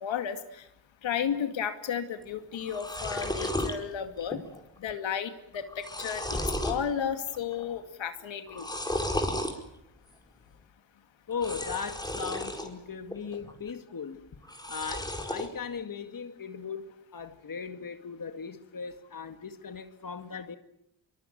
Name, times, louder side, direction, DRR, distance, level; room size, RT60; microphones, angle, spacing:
voice 1, 0.0-0.7 1.0-4.4 4.8-6.2 6.6-8.7, left 8 dB, 80° left, 2.5 m, -33 dB
sound 1, 2.2-2.3 2.5-3.8 4.2-4.6 4.9-5.0 5.5-6.8 7.3-7.7 8.5-9.5 11.3-12.7 13.1-13.7 14.4-15.5, left 1 dB, 10° left, 4.6 m, -33 dB
voice 2, 11.3-14.3 14.7-20.6, left 6 dB, 45° left, 2.1 m, -38 dB
24.0 x 23.0 x 9.2 m
cardioid pair, 75°, 45 cm